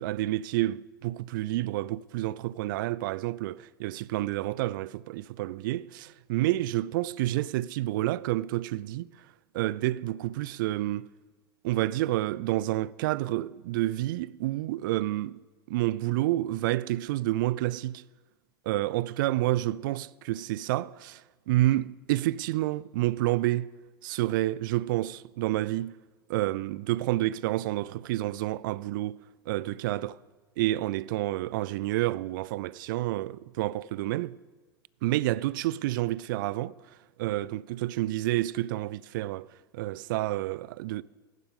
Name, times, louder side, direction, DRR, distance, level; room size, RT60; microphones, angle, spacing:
voice 1, 0.0-9.1 9.5-11.1 11.6-15.4 15.7-18.0 18.7-21.2 21.5-23.7 24.0-26.0 26.3-29.2 29.5-30.2 30.6-34.4 35.0-36.7 37.2-39.5 39.7-41.0, right 16 dB, 60° right, 0.4 m, -29 dB
15.5 x 11.0 x 3.7 m
hypercardioid pair, 95°, 12 cm